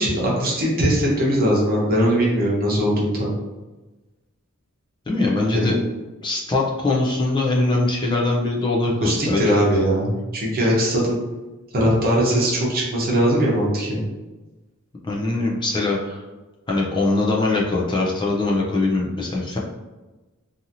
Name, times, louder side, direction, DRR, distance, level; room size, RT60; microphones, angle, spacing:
voice 1, 0.0-3.3 5.5-5.7 9.0-11.2 11.7-14.0, equal, 45° right, -4 dB, 0.9 m, -20 dB
voice 2, 5.1-5.8 6.2-9.5 15.0-16.2 16.7-19.6, left 2 dB, 20° left, -3 dB, 0.3 m, -22 dB
2.7 x 2.7 x 2.5 m, 1.2 s
head